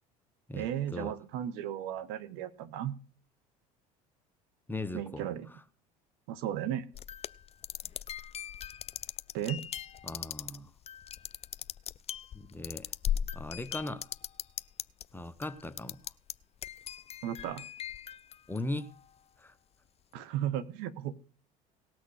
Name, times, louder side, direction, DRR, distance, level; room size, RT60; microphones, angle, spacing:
voice 1, 0.5-2.9 4.9-5.5 6.3-6.9 9.3-9.6 17.2-17.7 20.1-21.1, right 11 dB, 75° right, 1.4 m, -35 dB
voice 2, 4.7-5.6 10.0-10.7 12.3-12.9 13.3-14.1 15.1-16.0 18.5-18.9 19.4-19.5, left 2 dB, 10° left, 0.9 m, -38 dB
sound 1, 6.9-15.1 15.4-16.3 16.6-19.0, left 10 dB, 35° left, 0.5 m, -39 dB
18.0 x 6.4 x 6.5 m
supercardioid pair, 85°, 18 cm